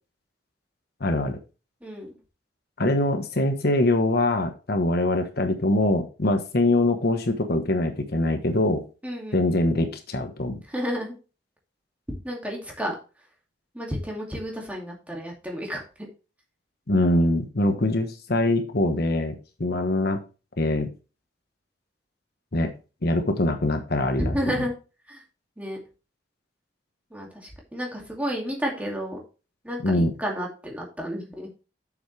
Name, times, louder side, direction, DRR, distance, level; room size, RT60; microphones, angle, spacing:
voice 1, 1.0-1.4 2.8-8.8 9.3-10.6 16.9-20.2 20.6-20.9 22.5-22.7 23.0-24.3 29.8-30.1, left 1 dB, 60° left, 6 dB, 1.1 m, -23 dB
voice 2, 1.8-2.2 9.0-9.5 10.7-11.2 12.2-12.9 13.7-16.1 24.2-24.8 25.1-25.2 25.6-25.8 27.1-29.2 29.6-31.5, equal, 10° right, -1 dB, 2.4 m, -31 dB
8.3 x 7.2 x 3.3 m, 0.32 s
head